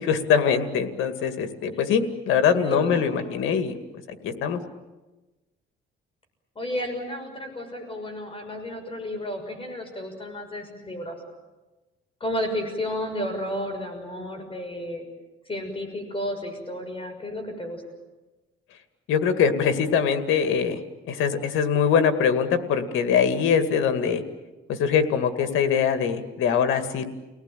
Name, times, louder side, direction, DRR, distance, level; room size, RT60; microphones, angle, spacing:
voice 1, 0.0-3.7 4.1-4.6 19.1-20.8 21.1-24.2 24.7-27.1, left 7 dB, 85° left, 8 dB, 2.2 m, -23 dB
voice 2, 2.3-3.5 6.5-11.2 12.2-15.0 15.5-17.8, left 1 dB, 25° left, 5 dB, 6.3 m, -32 dB
30.0 x 19.0 x 9.1 m, 1.2 s
cardioid pair, 90°, 20 cm